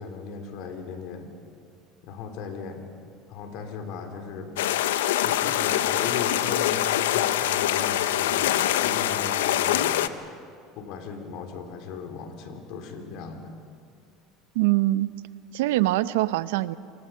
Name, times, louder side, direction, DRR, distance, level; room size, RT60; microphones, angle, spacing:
voice 1, 0.0-1.3 2.0-2.9 3.3-4.5 5.2-10.1 10.8-13.5, left 5 dB, 65° left, 5 dB, 3.5 m, -37 dB
sound 1, 4.6-10.1, left 12 dB, 85° left, 0.8 m, -24 dB
voice 2, 14.5-15.1 15.5-16.8, right 17 dB, 80° right, 16 dB, 0.6 m, -23 dB
27.5 x 23.5 x 5.7 m, 2.5 s
hypercardioid pair, 90°, 0 cm